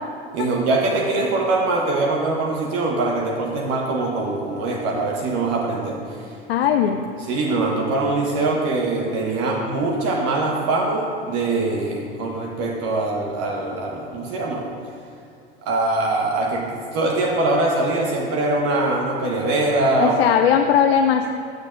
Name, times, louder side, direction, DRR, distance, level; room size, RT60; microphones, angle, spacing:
voice 1, 0.3-6.3 7.2-14.6 15.6-20.3, right 2 dB, 50° right, -1 dB, 1.2 m, -23 dB
voice 2, 6.5-7.0 20.0-21.3, left 8 dB, 80° left, 5 dB, 0.5 m, -18 dB
14.5 x 6.4 x 2.5 m, 2.6 s
hypercardioid pair, 80°, 30 cm